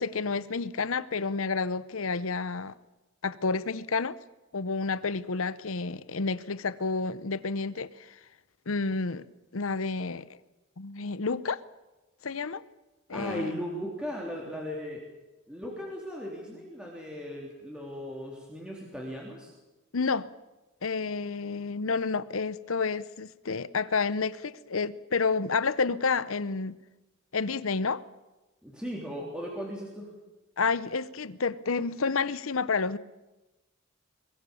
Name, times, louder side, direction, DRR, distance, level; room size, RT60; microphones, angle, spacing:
voice 1, 0.0-2.7 3.2-4.2 4.5-8.2 8.7-9.2 9.5-10.3 10.8-11.6 12.2-12.6 13.1-13.5 19.9-20.3 20.8-26.8 27.3-28.0 30.6-33.0, left 4 dB, 75° left, 0.8 m, -30 dB
voice 2, 13.1-15.0 15.5-19.5 28.6-30.1, equal, 5° right, 3.5 m, -37 dB
23.5 x 21.5 x 7.1 m
head